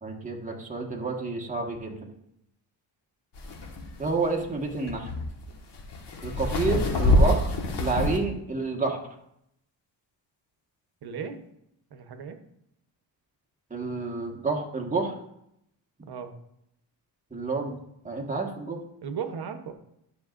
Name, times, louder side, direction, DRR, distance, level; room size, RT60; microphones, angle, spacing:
voice 1, 0.0-1.9 4.0-5.1 6.2-7.5 7.8-9.0 13.7-15.1 17.3-17.8 18.0-18.8, right 3 dB, 15° right, 1 dB, 1.4 m, -29 dB
sound 1, 3.4-8.2, left 1 dB, 65° left, 1.6 m, -25 dB
voice 2, 11.0-11.4 11.9-12.4 16.1-16.3 19.0-19.7, right 7 dB, 55° right, 7 dB, 1.0 m, -36 dB
12.5 x 6.4 x 2.5 m, 0.78 s
cardioid pair, 105°, 45 cm